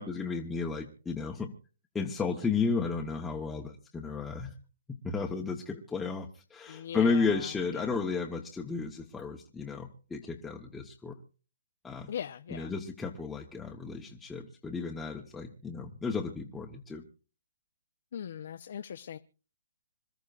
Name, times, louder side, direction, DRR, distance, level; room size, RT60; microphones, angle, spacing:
voice 1, 0.0-1.5 1.9-4.5 4.9-11.2 11.8-12.1 12.5-17.0, left 4 dB, 5° left, 1.0 m, -33 dB
voice 2, 6.7-7.9 12.1-12.7 18.1-19.2, left 9 dB, 60° left, 0.7 m, -40 dB
26.0 x 13.0 x 2.5 m
hypercardioid pair, 155°, 0 cm